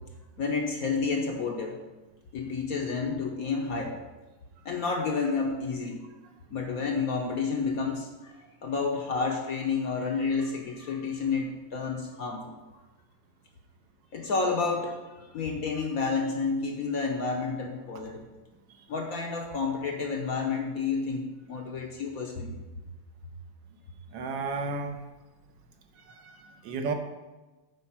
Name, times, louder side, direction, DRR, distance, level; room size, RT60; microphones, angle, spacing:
voice 1, 0.4-1.8 2.3-4.0 4.6-6.0 6.5-8.3 8.6-12.5 14.1-18.3 18.9-22.6, left 4 dB, 55° left, 2 dB, 1.1 m, -30 dB
voice 2, 24.1-25.0 26.2-26.3 26.6-26.9, right 4 dB, 70° right, 5 dB, 1.4 m, -32 dB
8.6 x 4.4 x 5.9 m, 1.2 s
omnidirectional pair, 2.1 m